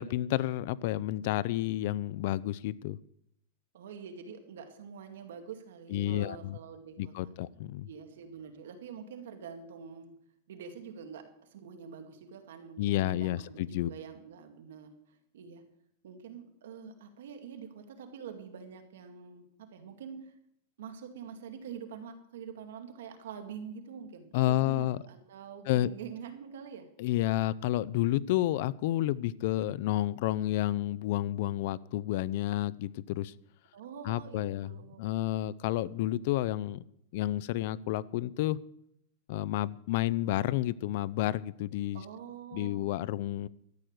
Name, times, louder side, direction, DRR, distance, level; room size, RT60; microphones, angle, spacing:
voice 1, 0.0-3.0 5.9-6.6 7.0-7.9 12.8-13.9 24.3-25.0 25.7-25.9 27.0-33.3 34.0-34.7 35.0-36.8 37.1-38.6 39.3-42.0 42.5-43.5, left 14 dB, 55° left, 20 dB, 0.5 m, -30 dB
voice 2, 3.7-7.3 7.9-10.1 10.5-11.2 11.5-14.9 15.3-15.6 16.0-20.3 20.8-26.9 33.7-35.1 41.9-42.9, right 7 dB, 80° right, 6 dB, 2.2 m, -46 dB
13.0 x 9.3 x 6.5 m, 0.75 s
supercardioid pair, 150°, 0 cm